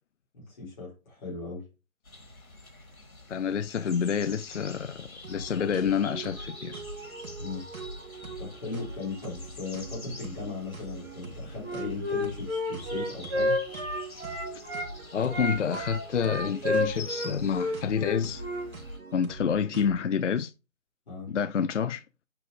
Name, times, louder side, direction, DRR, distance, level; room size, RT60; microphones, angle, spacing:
voice 1, 0.3-1.6 7.4-7.6 8.4-13.6 21.1-21.3, left 4 dB, 35° left, 4.2 m, -37 dB
sound 1, 2.0-19.0, left 2 dB, 75° left, 3.5 m, -47 dB
voice 2, 3.3-6.7 14.5-14.6 15.1-18.4 19.1-20.5 21.3-22.0, left 7 dB, 60° left, 0.5 m, -28 dB
sound 2, 5.2-20.1, right 3 dB, 80° right, 2.3 m, -43 dB
Wind instrument woodwind instrument, 11.6-14.9 15.3-18.7, left 1 dB, 15° right, 2.0 m, -30 dB
8.8 x 4.9 x 3.5 m
figure-of-eight pair, 160°, 41 cm